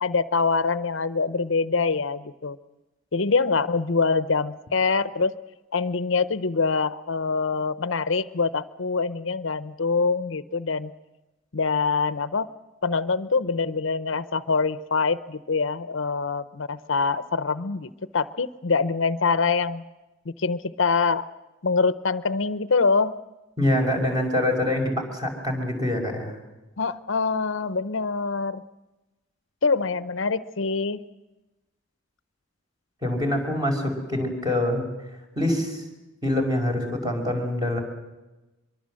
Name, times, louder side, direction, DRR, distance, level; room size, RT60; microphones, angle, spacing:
voice 1, 0.0-2.6 3.1-5.4 5.7-10.9 11.5-12.5 12.8-19.8 20.3-21.3 21.6-23.2 26.8-28.6 29.6-31.0, left 4 dB, 65° left, 15 dB, 0.8 m, -24 dB
voice 2, 23.6-26.4 33.0-34.8 35.4-35.8 36.2-37.8, left 1 dB, 20° right, 3 dB, 5.5 m, -25 dB
24.5 x 23.0 x 7.7 m, 1.1 s
head